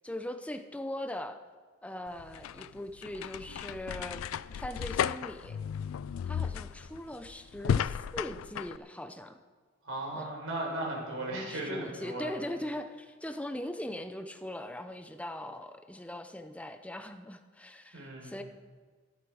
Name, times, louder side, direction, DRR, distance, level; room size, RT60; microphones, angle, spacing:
voice 1, 0.0-1.4 1.8-5.6 6.3-9.4 10.1-10.3 11.3-18.4, left 1 dB, 5° left, 8 dB, 0.5 m, -40 dB
sound 1, 2.1-8.8, left 8 dB, 80° left, 0.3 m, -34 dB
voice 2, 9.8-12.3 17.9-18.3, right 1 dB, 65° right, -1 dB, 4.6 m, -36 dB
14.0 x 12.5 x 4.9 m, 1.5 s
head